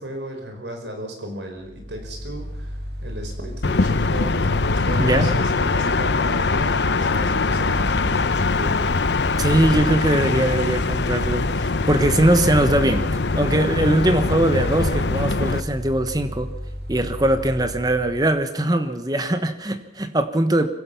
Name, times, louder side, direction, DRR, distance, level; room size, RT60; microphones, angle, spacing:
voice 1, 0.0-8.9, right 1 dB, 85° right, 4 dB, 5.1 m, -35 dB
Mechanical fan, 1.6-18.4, equal, 70° right, 2.9 m, -34 dB
sound 1, 3.6-15.6, left 3 dB, 80° left, 0.8 m, -22 dB
voice 2, 9.4-13.1 13.3-16.5 16.9-20.7, right 1 dB, 20° right, 9 dB, 1.3 m, -21 dB
25.0 x 16.5 x 7.2 m, 0.86 s
head